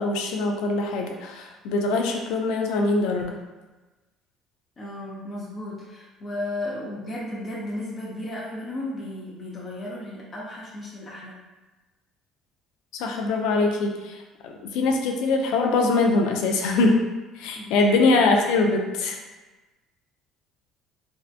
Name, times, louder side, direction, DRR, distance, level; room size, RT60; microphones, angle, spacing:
voice 1, 0.0-3.4 12.9-14.2 14.4-17.0 17.4-19.2, left 3 dB, 75° left, 2 dB, 0.3 m, -23 dB
voice 2, 4.8-11.4 17.6-17.9, left 1 dB, 35° left, -5 dB, 0.6 m, -34 dB
2.7 x 2.1 x 2.4 m, 1.2 s
supercardioid pair, 80°, 0 cm